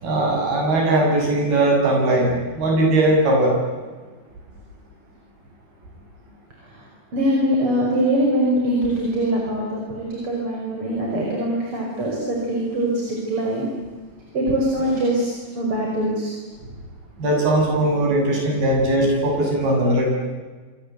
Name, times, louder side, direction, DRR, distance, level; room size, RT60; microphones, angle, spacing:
voice 1, 0.0-3.5 17.2-20.1, right 1 dB, 75° right, 0 dB, 9.3 m, -19 dB
voice 2, 7.1-12.9 13.3-13.6 14.3-15.3 15.6-16.3, right 1 dB, 35° right, -2 dB, 6.0 m, -22 dB
28.0 x 24.5 x 8.3 m, 1.4 s
omnidirectional pair, 4.4 m